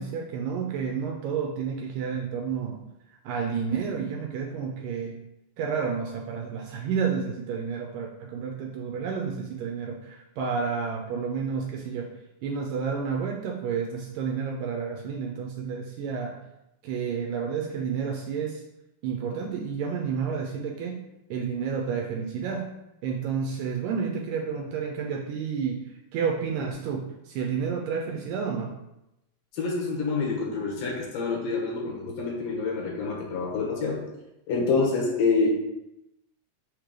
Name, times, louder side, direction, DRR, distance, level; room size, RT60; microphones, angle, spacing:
voice 1, 0.0-2.8 3.2-5.2 5.6-12.1 12.4-16.4 16.8-18.6 19.0-21.0 21.3-22.7 23.0-28.8, right 6 dB, 80° right, 1 dB, 2.0 m, -30 dB
voice 2, 29.5-34.0 34.5-35.6, left 4 dB, 70° left, -2 dB, 2.9 m, -27 dB
6.5 x 3.2 x 5.0 m, 0.89 s
omnidirectional pair, 4.2 m